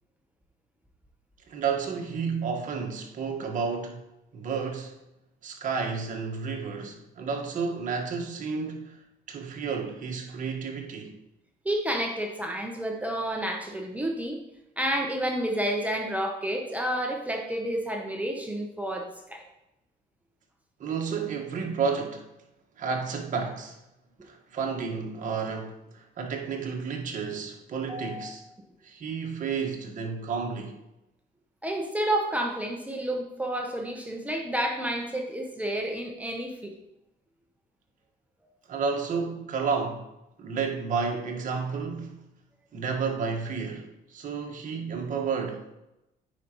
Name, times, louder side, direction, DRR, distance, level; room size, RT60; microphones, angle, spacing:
voice 1, 1.5-4.0 4.3-5.0 5.4-9.0 9.3-11.2 20.8-22.3 22.8-23.8 24.2-28.4 28.8-30.8 38.7-40.1 40.4-42.2 42.7-45.6, right 5 dB, 50° right, 1.6 m, -31 dB
voice 2, 11.6-14.4 14.8-19.4 27.9-28.3 31.6-36.7, right 1 dB, 10° right, 0.9 m, -30 dB
9.3 x 5.1 x 3.1 m
cardioid pair, 110°, 17 cm